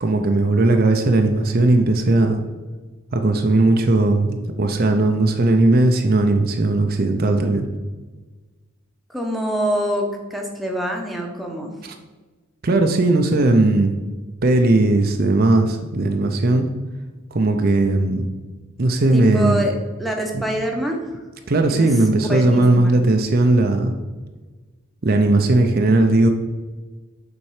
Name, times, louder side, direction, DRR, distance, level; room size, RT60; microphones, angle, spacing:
voice 1, 0.0-2.4 3.1-7.7 11.8-11.9 12.6-13.9 14.4-16.7 17.3-18.3 18.8-19.6 20.3-20.4 21.5-23.9 25.0-26.3, right 2 dB, 45° right, 5 dB, 0.6 m, -17 dB
voice 2, 9.1-11.8 19.1-19.7 20.0-21.0 21.7-21.9 22.2-23.0, equal, ahead, 1 dB, 0.9 m, -25 dB
7.1 x 4.4 x 4.9 m, 1.3 s
head